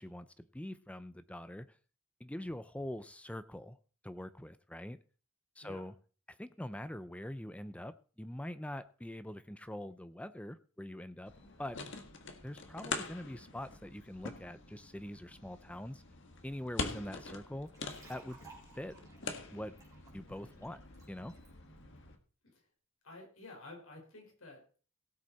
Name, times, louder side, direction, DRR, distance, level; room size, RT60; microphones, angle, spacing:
voice 1, 0.0-1.7 2.2-3.8 4.0-5.0 5.6-5.9 6.4-11.3 11.6-11.8 12.4-16.0 16.4-17.7 18.1-18.4 18.7-19.0 19.5-19.7 20.1-20.8 21.1-21.4, left 1 dB, 5° left, 13 dB, 0.5 m, -43 dB
sound 1, 11.3-22.2, left 3 dB, 60° left, 1.7 m, -45 dB
sound 2, 17.7-21.5, right 4 dB, 15° right, 4.3 m, -59 dB
voice 2, 23.0-24.8, left 2 dB, 80° left, 1 dB, 5.2 m, -52 dB
17.5 x 8.1 x 4.2 m, 0.37 s
head